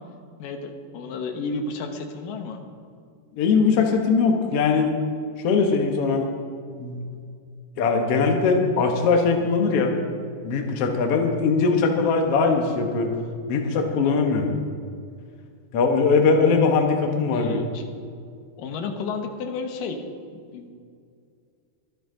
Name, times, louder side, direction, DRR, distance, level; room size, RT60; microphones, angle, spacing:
voice 1, 0.4-2.6 17.3-17.9 18.6-20.0 20.5-20.7, left 4 dB, 70° left, 5 dB, 2.3 m, -32 dB
voice 2, 3.4-4.9 5.4-6.3 6.8-7.0 7.8-9.9 10.4-13.1 13.5-14.5 15.7-17.6, left 4 dB, 90° left, 3 dB, 1.3 m, -21 dB
24.0 x 8.0 x 3.9 m, 2.3 s
omnidirectional pair, 4.6 m